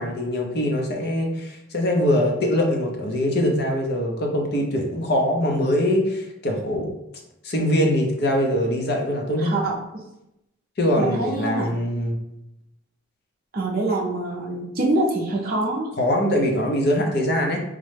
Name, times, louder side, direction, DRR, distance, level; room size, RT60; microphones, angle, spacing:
voice 1, 0.0-6.9 7.4-9.5 10.8-12.2 16.0-17.6, left 1 dB, 50° left, 1 dB, 0.6 m, -22 dB
voice 2, 9.4-9.8 11.0-11.7 13.5-15.9, right 2 dB, 45° right, -2 dB, 0.5 m, -25 dB
3.6 x 2.1 x 3.2 m, 0.85 s
head